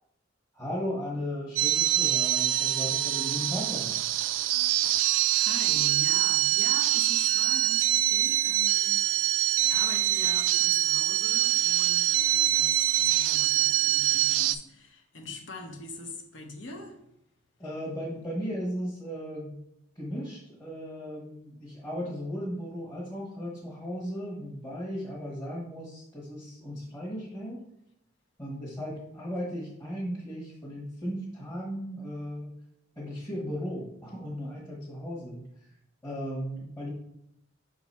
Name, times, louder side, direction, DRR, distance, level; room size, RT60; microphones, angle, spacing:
voice 1, 0.5-4.2 17.6-19.6 19.9-27.6 28.4-32.5 33.0-35.7 36.0-36.9, equal, 20° left, 1.3 m, -36 dB
sound 1, 1.6-14.6, right 14 dB, 85° right, 0.3 m, -24 dB
voice 2, 5.3-17.0, left 2 dB, 70° left, 1.0 m, -42 dB
5.8 x 3.9 x 4.2 m
head